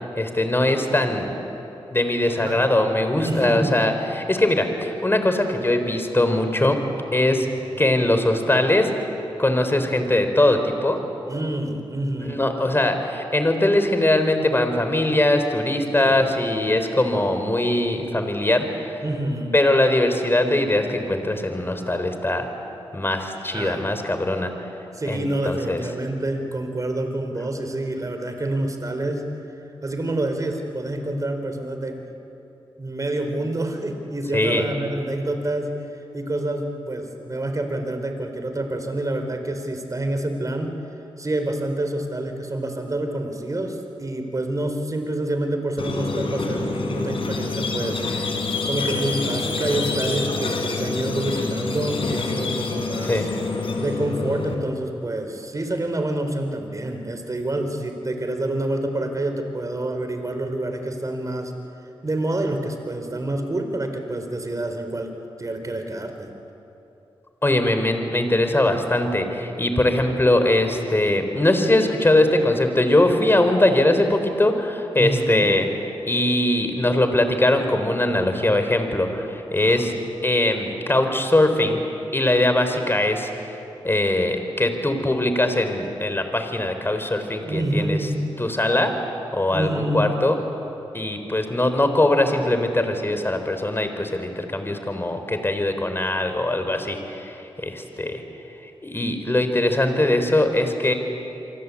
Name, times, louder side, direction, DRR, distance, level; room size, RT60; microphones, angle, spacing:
voice 1, 0.2-1.4 1.9-6.8 7.1-7.5 7.8-8.9 9.4-11.0 12.2-19.0 19.5-22.5 22.9-24.7 25.1-25.8 34.3-34.6 53.0-53.3 67.4-75.7 76.1-79.9 80.2-81.8 82.1-83.3 83.8-88.0 88.4-89.0 89.3-90.4 90.9-98.2 98.8-100.9, left 1 dB, 25° left, 7 dB, 4.0 m, -21 dB
voice 2, 2.3-2.7 3.2-3.8 7.7-7.9 11.2-12.4 15.9-16.3 19.0-19.6 23.5-23.9 24.9-29.3 29.8-31.9 32.8-35.7 36.1-40.7 41.2-48.0 48.7-53.3 53.8-61.5 62.0-65.1 65.4-66.3 75.0-75.5 79.6-79.9 87.4-88.2 89.5-90.1, right 1 dB, 35° right, 5 dB, 4.3 m, -27 dB
Squeak, 45.8-54.5, left 4 dB, 70° left, 4.6 m, -27 dB
28.0 x 24.0 x 8.5 m, 3.0 s
cardioid pair, 60°, 10 cm